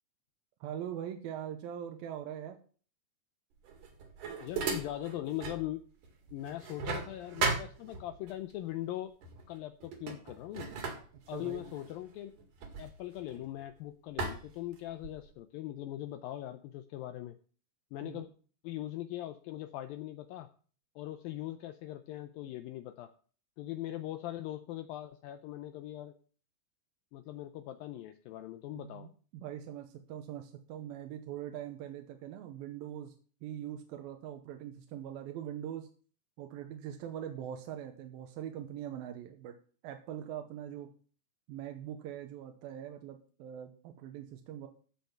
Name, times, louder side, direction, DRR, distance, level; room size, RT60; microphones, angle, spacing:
voice 1, 0.6-2.6 11.3-11.6 18.0-18.2 28.8-33.1 33.4-35.9 36.4-39.5 39.8-40.9 41.5-44.7, right 10 dB, 75° right, 5 dB, 2.4 m, -42 dB
sound 1, 3.6-5.7 6.0-8.3 9.2-9.5 9.8-13.7 14.2-15.3, right 4 dB, 55° right, 3.2 m, -37 dB
voice 2, 4.4-5.8 6.3-9.1 9.5-10.7 11.3-12.3 12.8-17.4 17.9-18.3 18.6-20.5 21.0-23.1 23.6-26.1 27.1-29.1, left 14 dB, 90° left, 9 dB, 2.0 m, -40 dB
14.5 x 5.5 x 5.9 m, 0.42 s
omnidirectional pair, 4.8 m